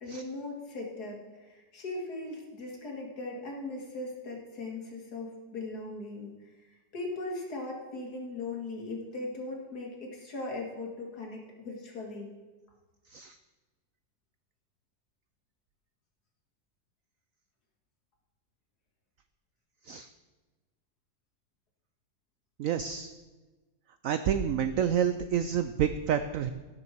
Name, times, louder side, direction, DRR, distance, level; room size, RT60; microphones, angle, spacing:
voice 1, 0.0-6.3 6.9-12.3, left 2 dB, 60° left, 0 dB, 2.4 m, -39 dB
voice 2, 22.6-23.1 24.0-26.5, right 9 dB, 85° right, 10 dB, 0.7 m, -28 dB
17.5 x 6.6 x 4.5 m, 1.2 s
omnidirectional pair, 2.0 m